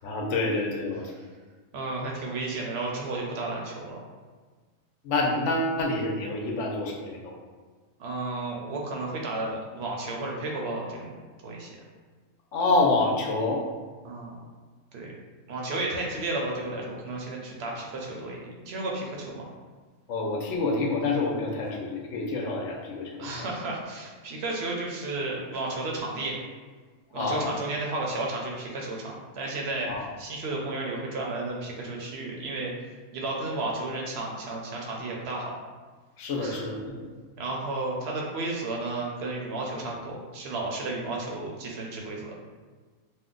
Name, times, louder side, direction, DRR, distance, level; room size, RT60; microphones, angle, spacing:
voice 1, 0.0-1.1 5.0-7.4 12.5-13.6 20.1-23.5 27.1-27.5 29.9-30.1 36.2-37.1, left 2 dB, 70° left, -1 dB, 0.9 m, -27 dB
voice 2, 1.7-4.0 8.0-11.2 11.4-11.7 14.0-14.4 14.9-15.1 15.5-18.4 18.7-19.5 23.2-26.4 27.1-29.9 30.2-32.7 33.1-35.6 36.4-36.7 37.4-42.3, right 2 dB, 60° right, -2 dB, 0.7 m, -33 dB
2.6 x 2.2 x 3.7 m, 1.4 s
omnidirectional pair, 1.4 m